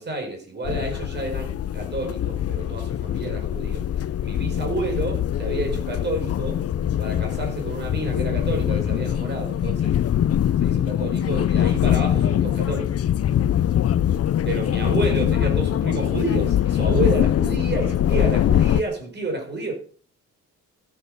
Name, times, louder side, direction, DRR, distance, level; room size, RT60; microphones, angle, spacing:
voice 1, 0.0-3.9 4.2-6.6 7.0-10.0 10.6-13.0 14.5-19.7, right 2 dB, 35° right, 5.3 m, -30 dB
sound 1, 0.6-18.8, left 10 dB, 50° left, 0.5 m, -23 dB
14.0 x 9.4 x 6.7 m
wide cardioid pair, 165°, 32 cm